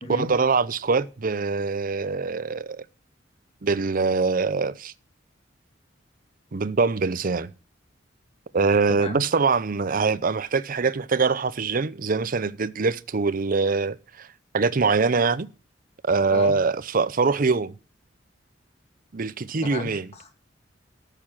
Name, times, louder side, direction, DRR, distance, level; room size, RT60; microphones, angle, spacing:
voice 1, 0.1-2.8 3.6-4.9 6.5-7.5 8.5-14.3 14.5-15.5 16.0-17.7 19.1-20.1, right 4 dB, 50° right, 0.6 m, -23 dB
voice 2, 19.6-20.3, left 2 dB, 35° left, 2.1 m, -34 dB
13.5 x 6.8 x 5.9 m
head